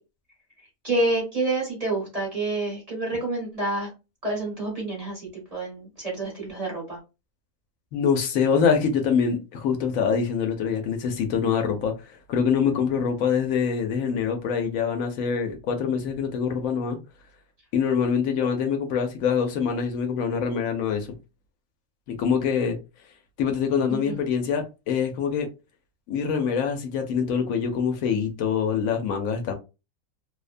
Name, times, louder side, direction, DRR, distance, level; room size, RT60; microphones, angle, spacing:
voice 1, 0.8-3.9 4.2-7.0 23.9-24.2, right 2 dB, 30° right, 1.0 m, -28 dB
voice 2, 7.9-11.9 12.3-17.0 17.7-21.1 22.1-22.8 23.4-25.5 26.1-29.5, left 6 dB, 75° left, 1.0 m, -24 dB
2.7 x 2.1 x 2.4 m
omnidirectional pair, 1.5 m